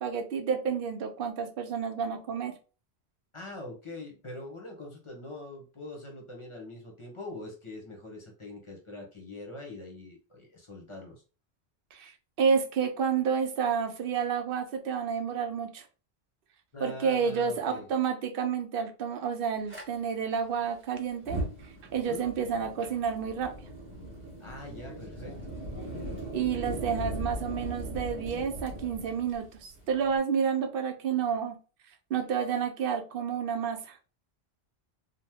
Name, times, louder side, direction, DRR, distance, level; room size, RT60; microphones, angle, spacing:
voice 1, 0.0-2.5 11.9-15.8 16.8-21.4 21.9-23.5 26.3-31.6 32.1-34.0, right 6 dB, 60° right, 5 dB, 0.7 m, -30 dB
voice 2, 3.3-11.2 16.7-17.9 22.1-22.2 24.4-25.6, left 2 dB, 30° left, 1 dB, 0.8 m, -43 dB
Fire, 19.7-19.8 21.1-30.2, right 1 dB, 10° right, 0.9 m, -39 dB
2.9 x 2.1 x 3.4 m, 0.35 s
omnidirectional pair, 1.1 m